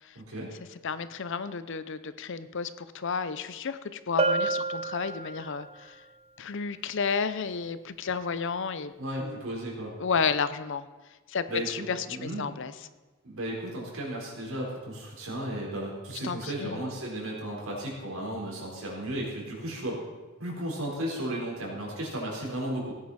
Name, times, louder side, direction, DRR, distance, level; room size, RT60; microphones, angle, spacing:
voice 1, 0.1-0.5 9.0-9.9 11.5-12.5 13.2-20.0 20.4-22.9, right 1 dB, 80° right, -2 dB, 4.2 m, -34 dB
voice 2, 0.8-5.9 6.4-8.9 9.2-9.4 10.0-10.9 11.3-12.7 16.2-16.8, left 5 dB, 60° left, 13 dB, 0.6 m, -32 dB
Bell, 4.2-5.8, right 3 dB, 30° right, 0.7 m, -28 dB
17.0 x 9.6 x 4.2 m, 1.2 s
head